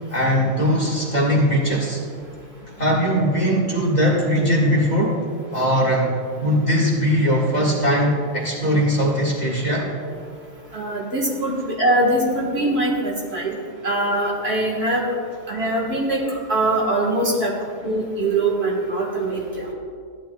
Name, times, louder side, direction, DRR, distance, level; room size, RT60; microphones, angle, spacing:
voice 1, 0.1-2.0 2.8-5.2 5.5-6.1 6.4-9.9, equal, 30° left, -5 dB, 1.7 m, -20 dB
voice 2, 10.7-13.6 13.8-15.1 15.5-17.5 17.8-19.7, right 1 dB, 50° right, -2 dB, 1.7 m, -22 dB
14.5 x 10.0 x 2.3 m, 2.2 s
omnidirectional pair, 1.4 m